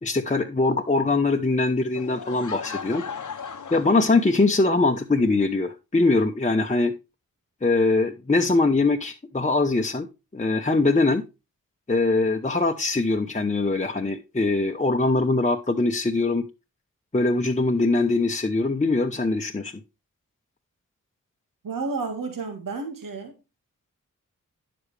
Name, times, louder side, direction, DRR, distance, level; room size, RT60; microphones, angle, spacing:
voice 1, 0.0-3.0 3.7-6.9 7.6-10.1 10.3-11.2 11.9-16.4 17.1-19.7, left 3 dB, 20° left, 0.9 m, -22 dB
Laughter / Crowd, 1.9-4.8, left 6 dB, 65° left, 1.0 m, -37 dB
voice 2, 21.6-23.3, right 4 dB, 75° right, 1.7 m, -31 dB
9.8 x 7.3 x 3.3 m
cardioid pair, 45°, 33 cm